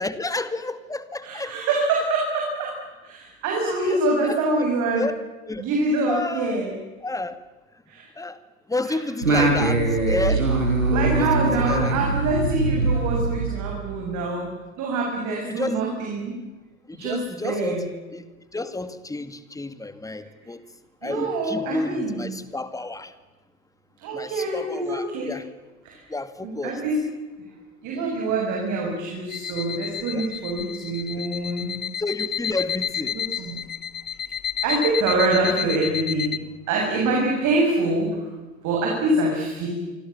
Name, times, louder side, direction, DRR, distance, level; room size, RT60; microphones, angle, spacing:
voice 1, 0.0-1.5 3.8-4.7 4.9-5.1 5.5-5.6 6.1-6.6 7.0-7.4 8.2-8.4 8.7-10.5 11.2-11.9 15.3-15.8 16.9-17.8 18.1-18.2 18.5-20.6 21.0-23.1 24.1-25.5 26.1-26.8 27.9-28.1 30.1-30.3 31.2-31.3 32.0-33.2, left 2 dB, 10° left, 12 dB, 2.3 m, -31 dB
voice 2, 1.2-2.7 3.0-5.1 5.6-6.7 7.9-8.1 8.8-9.0 10.9-14.5 14.8-16.4 17.0-17.8 21.0-22.3 24.0-25.3 25.9-26.0 26.4-27.0 27.8-31.8 33.1-33.6 34.6-36.4 36.7-38.2 38.6-39.7, right 2 dB, 45° right, 0 dB, 7.3 m, -25 dB
Singing, 9.2-14.0, right 2 dB, 90° right, 6.1 m, -22 dB
sound 1, 29.3-36.4, left 9 dB, 25° left, 1.2 m, -30 dB
27.5 x 25.5 x 7.3 m, 1.2 s
figure-of-eight pair, 80°, 40 cm